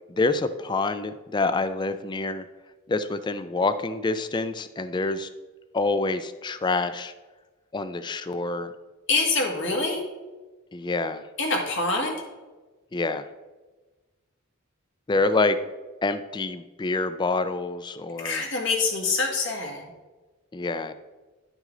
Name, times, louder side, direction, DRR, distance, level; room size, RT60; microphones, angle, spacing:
voice 1, 0.1-2.4 2.9-5.3 5.7-7.1 7.7-8.7 10.7-11.2 12.9-13.2 15.1-15.6 16.0-18.5 20.5-20.9, left 3 dB, 20° left, 12 dB, 0.3 m, -26 dB
voice 2, 9.1-10.0 11.4-12.2 18.2-19.8, left 3 dB, 60° left, 0 dB, 1.9 m, -25 dB
10.5 x 6.2 x 3.8 m, 1.2 s
head